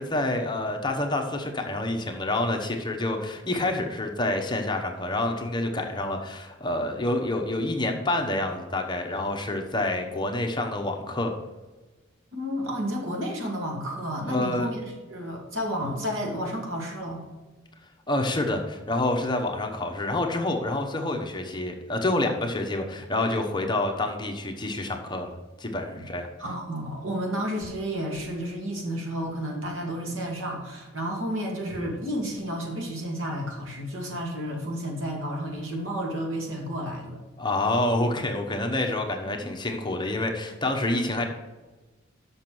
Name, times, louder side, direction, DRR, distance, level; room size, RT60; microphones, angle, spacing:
voice 1, 0.0-11.3 14.2-14.7 18.1-25.3 25.6-26.3 37.4-41.3, left 2 dB, 25° left, 3 dB, 0.9 m, -27 dB
voice 2, 12.3-17.2 26.4-37.2 39.4-39.5 40.9-41.0, equal, 90° right, 0 dB, 2.2 m, -31 dB
7.2 x 6.1 x 6.1 m, 1.2 s
head